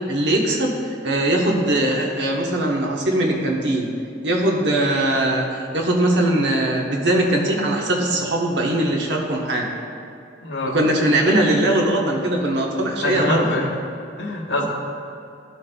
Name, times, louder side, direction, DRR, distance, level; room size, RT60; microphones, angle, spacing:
voice 1, 0.1-3.9 4.2-5.5 5.7-9.7 10.7-13.6, right 1 dB, 70° right, -1 dB, 1.1 m, -20 dB
voice 2, 10.4-10.8 13.0-13.7 14.2-14.7, left 2 dB, 90° left, -1 dB, 1.2 m, -24 dB
13.0 x 5.8 x 2.3 m, 2.6 s
head